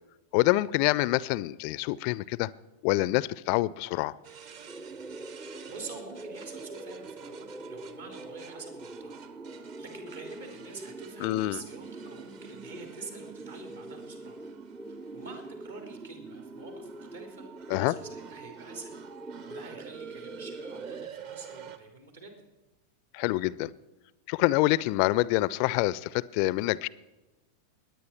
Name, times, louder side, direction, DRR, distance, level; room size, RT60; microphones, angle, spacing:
voice 1, 0.3-2.5 2.8-4.1 11.2-11.6 17.7-18.0 23.1-23.7 24.3-26.9, left 19 dB, 45° left, 20 dB, 0.4 m, -26 dB
sound 1, 4.2-21.8, right 8 dB, 50° right, 1.1 m, -49 dB
sound 2, 4.7-21.1, right 2 dB, 15° right, 0.5 m, -44 dB
voice 2, 5.3-9.2 9.5-14.4 14.8-18.9 19.5-22.4, right 3 dB, 70° right, 4 dB, 3.3 m, -47 dB
21.0 x 9.6 x 4.4 m, 1.1 s
figure-of-eight pair, 90°, 0 cm